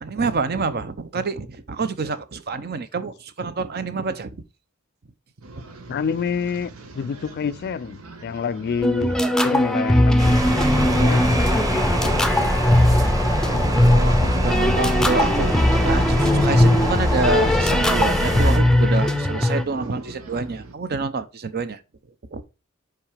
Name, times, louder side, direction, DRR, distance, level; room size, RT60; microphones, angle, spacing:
voice 1, 0.0-4.4 13.5-21.8 22.3-22.4, right 4 dB, 50° right, 0.7 m, -27 dB
sound 1, 5.4-20.7, right 2 dB, 80° right, 1.2 m, -43 dB
voice 2, 5.9-9.1 9.4-11.4, left 6 dB, 50° left, 0.3 m, -27 dB
sound 2, 8.8-19.6, left 1 dB, 5° left, 0.6 m, -20 dB
sound 3, 10.2-18.6, equal, 15° right, 1.2 m, -23 dB
5.8 x 4.7 x 5.0 m
head